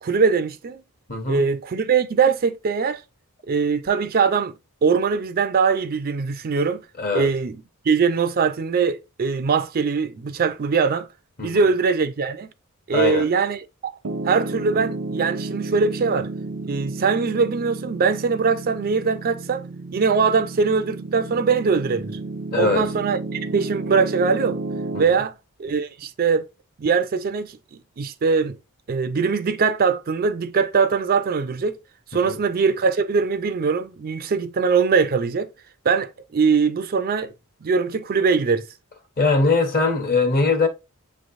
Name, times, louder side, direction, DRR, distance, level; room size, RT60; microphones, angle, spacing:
voice 1, 0.0-0.8 1.3-3.0 3.5-4.5 4.8-6.8 7.1-7.6 7.9-11.1 11.4-12.5 12.9-13.9 14.2-16.3 16.6-19.7 19.9-22.2 22.5-24.6 25.0-25.3 25.6-26.5 26.8-28.6 28.9-31.8 32.1-35.5 35.8-37.3 37.6-38.6, right 5 dB, 45° right, 0.4 m, -22 dB
voice 2, 1.1-1.5 7.0-7.3 11.4-11.7 12.9-13.3 22.5-22.9 24.9-25.2 32.1-32.4 39.2-40.7, left 3 dB, 45° left, 1.1 m, -21 dB
Piano, 14.0-25.1, right 2 dB, 75° right, 0.7 m, -32 dB
6.7 x 3.1 x 2.5 m
head